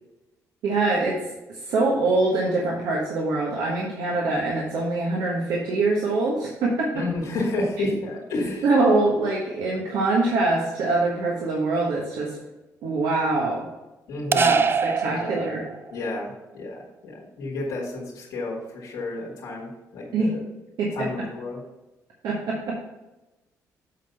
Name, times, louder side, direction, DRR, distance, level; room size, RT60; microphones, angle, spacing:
voice 1, 0.6-1.2 1.5-7.0 8.6-12.4 12.8-13.7 14.3-15.6 20.1-20.4 20.8-21.3 22.2-22.8, right 2 dB, 80° right, -3 dB, 1.3 m, -24 dB
voice 2, 6.9-8.7 14.1-14.6 15.0-15.6 15.9-20.4 20.9-21.6, left 2 dB, 90° left, -5 dB, 2.1 m, -31 dB
sound 1, 14.3-16.0, right 6 dB, 35° right, 0.3 m, -23 dB
8.2 x 4.0 x 5.8 m, 1.0 s
cardioid pair, 75°, 7 cm